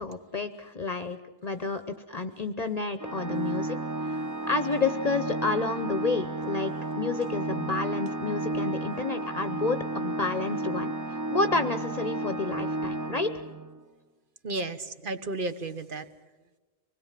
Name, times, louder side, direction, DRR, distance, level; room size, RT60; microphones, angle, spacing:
voice 1, 0.0-3.8 4.0-13.3, left 3 dB, 45° left, 9 dB, 0.9 m, -30 dB
Organ, 3.0-13.8, right 2 dB, 20° right, 0.6 m, -32 dB
voice 2, 12.2-12.7 13.1-13.2 14.4-16.1, right 2 dB, 55° right, 10 dB, 1.4 m, -35 dB
25.0 x 20.5 x 7.4 m, 1.2 s
omnidirectional pair, 1.0 m